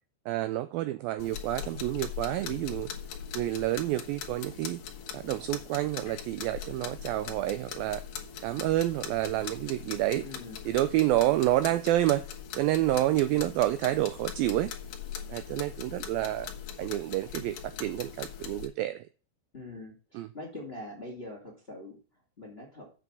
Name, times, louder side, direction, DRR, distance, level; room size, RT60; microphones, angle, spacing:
voice 1, 0.3-2.9 3.3-4.8 5.1-8.0 8.4-10.2 10.7-12.2 12.6-14.7 15.3-16.5 16.8-19.1 20.1-20.3, right 15 dB, 85° right, 2.1 m, -28 dB
sound 1, 1.2-18.7, left 8 dB, 65° left, 2.6 m, -41 dB
voice 2, 10.2-10.6 13.3-13.5 19.5-22.0 22.4-22.9, left 2 dB, 20° left, 1.6 m, -43 dB
7.7 x 6.2 x 6.0 m
omnidirectional pair, 4.7 m